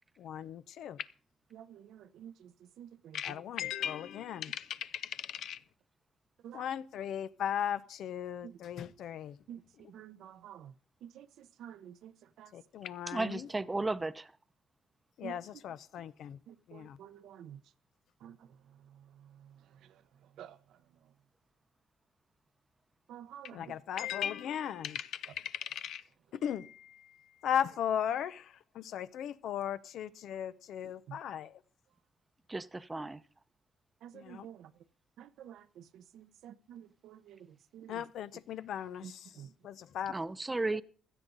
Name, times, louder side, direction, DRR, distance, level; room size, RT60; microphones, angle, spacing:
voice 1, 0.2-1.1 3.1-5.6 6.5-9.4 12.5-13.5 15.2-16.4 16.7-17.0 23.5-26.0 26.3-27.2 27.4-31.6 34.1-34.4 37.9-39.2 39.6-40.2, left 9 dB, 75° left, 0.6 m, -37 dB
voice 2, 1.5-3.4 6.4-6.7 8.4-8.6 9.5-10.8 11.0-12.6 15.2-15.6 16.5-17.7 18.2-21.1 23.1-23.8 31.1-31.2 34.0-34.7 35.2-38.1 39.0-39.5, right 10 dB, 80° right, 0.8 m, -51 dB
voice 3, 13.1-14.3 32.5-33.2 40.1-40.8, right 2 dB, 20° right, 0.7 m, -34 dB
16.0 x 12.0 x 3.9 m
cardioid pair, 90°, 0 cm